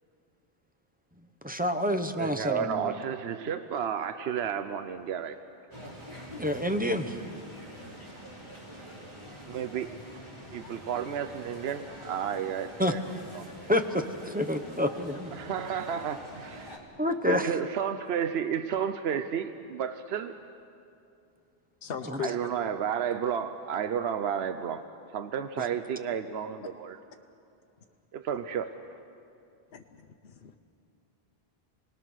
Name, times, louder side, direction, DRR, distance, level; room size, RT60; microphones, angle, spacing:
voice 1, 1.4-2.9 6.4-7.2 12.8-12.9 13.7-15.3 17.0-17.6 22.1-22.2 25.6-25.7, left 1 dB, 10° right, 6 dB, 0.9 m, -28 dB
voice 2, 2.2-5.4 9.5-10.2 10.5-13.0 13.3-13.4 15.3-16.7 17.2-20.3 22.2-24.8 25.1-27.0 28.1-28.7, right 8 dB, 80° right, 9 dB, 1.0 m, -32 dB
sound 1, 5.7-16.8, equal, 25° right, 3.1 m, -45 dB
voice 3, 21.8-22.4 29.7-30.6, left 7 dB, 65° left, 4 dB, 1.0 m, -38 dB
29.0 x 19.5 x 6.4 m, 2.6 s
omnidirectional pair, 1.0 m